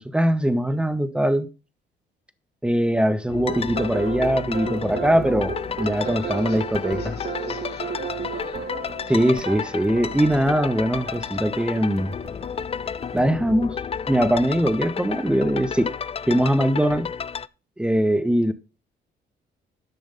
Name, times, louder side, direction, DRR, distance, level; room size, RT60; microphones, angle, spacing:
voice 1, 0.0-1.5 2.6-7.1 9.1-12.1 13.1-13.8 14.1-15.9 16.3-17.1 17.8-18.5, equal, 5° right, 1.1 m, -21 dB
sound 1, 3.3-17.5, left 7 dB, 30° left, 0.4 m, -32 dB
sound 2, 3.5-13.3, right 5 dB, 55° right, 2.5 m, -34 dB
voice 2, 6.0-8.7, left 5 dB, 55° left, 3.8 m, -45 dB
10.5 x 6.2 x 5.3 m
cardioid pair, 90°, 20 cm